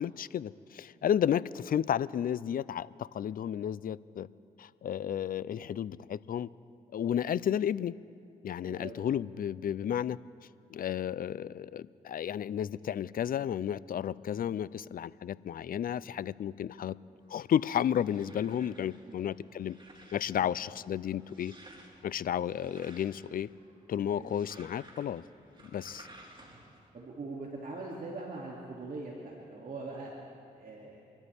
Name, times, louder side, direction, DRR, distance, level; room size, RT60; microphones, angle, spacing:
voice 1, 0.0-4.3 4.6-6.5 6.9-7.9 8.4-10.2 10.7-17.0 17.3-19.8 20.1-21.5 22.0-23.5 23.9-25.2 25.7-26.1, left 9 dB, 55° left, 19 dB, 0.5 m, -32 dB
voice 2, 8.6-9.0 19.0-19.2 20.3-20.5 24.1-24.4 26.9-30.1 30.5-31.0, right 3 dB, 50° right, -3 dB, 2.7 m, -42 dB
sound 1, 17.2-26.9, right 1 dB, 30° right, 4.0 m, -56 dB
27.0 x 12.5 x 3.6 m, 2.5 s
supercardioid pair, 45°, 18 cm